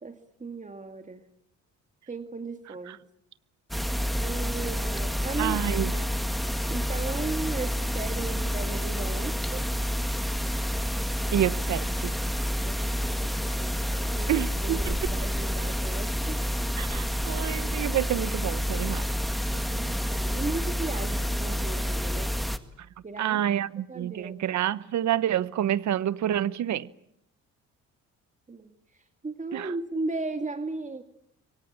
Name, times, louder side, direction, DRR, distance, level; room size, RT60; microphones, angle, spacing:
voice 1, 0.0-1.2 2.1-3.0 4.2-5.6 5.9-6.1 6.7-9.6 12.6-16.4 19.5-22.3 23.0-23.4 23.9-24.4 28.5-28.7 29.2-31.0, right 3 dB, 25° right, 2.3 m, -36 dB
sound 1, 3.7-22.6, equal, ahead, 2.0 m, -29 dB
voice 2, 5.4-5.9 11.3-12.2 14.3-15.0 16.8-19.1 23.2-26.9 29.5-29.7, right 11 dB, 70° right, 1.1 m, -28 dB
26.5 x 23.5 x 8.9 m
cardioid pair, 90°, 30 cm